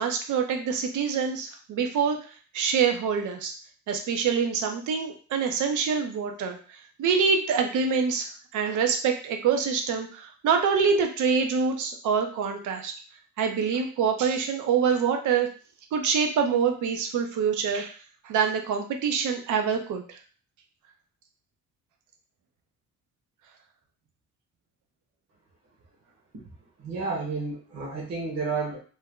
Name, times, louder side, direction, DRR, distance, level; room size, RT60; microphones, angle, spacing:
voice 1, 0.0-2.2 2.5-3.5 3.9-12.9 13.4-15.5 15.9-17.9 18.2-20.2, right 6 dB, 80° right, 4 dB, 0.7 m, -25 dB
voice 2, 26.8-28.8, right 4 dB, 60° right, -4 dB, 1.2 m, -31 dB
2.8 x 2.3 x 3.6 m, 0.39 s
cardioid pair, 90°, 30 cm